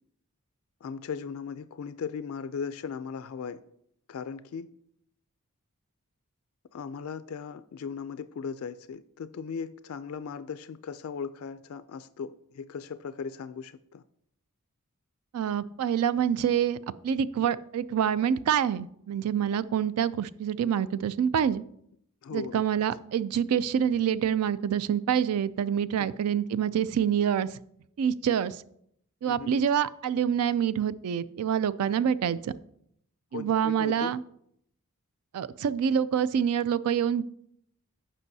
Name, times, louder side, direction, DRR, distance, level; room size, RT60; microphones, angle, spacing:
voice 1, 0.8-3.6 4.1-4.7 6.7-14.0 22.2-22.6 26.0-26.1 29.2-29.5 33.3-34.2, left 6 dB, 70° left, 13 dB, 0.4 m, -38 dB
voice 2, 15.3-16.8 17.0-21.6 22.3-27.6 28.0-28.6 29.2-32.5 33.3-34.2 35.3-37.2, right 8 dB, 90° right, 15 dB, 0.3 m, -26 dB
15.5 x 5.4 x 2.7 m, 0.71 s
head